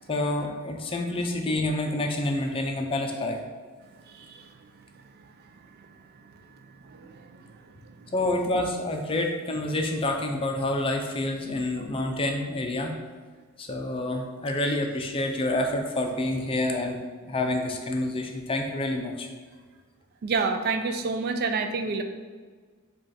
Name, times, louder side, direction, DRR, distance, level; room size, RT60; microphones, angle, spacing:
voice 1, 0.1-3.4 8.1-12.9 13.6-19.3, left 1 dB, 25° left, 2 dB, 0.4 m, -28 dB
voice 2, 4.1-4.5 6.8-7.5 20.2-22.0, right 4 dB, 45° right, 7 dB, 0.3 m, -29 dB
5.1 x 2.4 x 4.1 m, 1.5 s
head